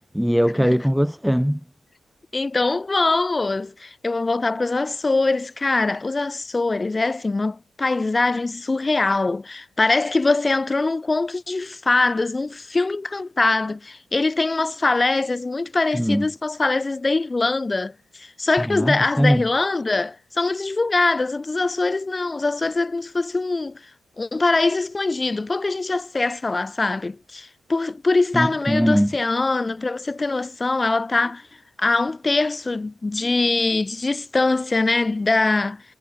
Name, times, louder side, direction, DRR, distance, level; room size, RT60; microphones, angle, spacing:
voice 1, 0.1-1.6 15.9-16.2 18.7-19.4 28.3-29.1, equal, ahead, 1.3 m, -20 dB
voice 2, 2.3-23.9 24.2-31.5 31.8-35.8, left 3 dB, 30° left, 5.8 m, -23 dB
cardioid pair, 65°, 0 cm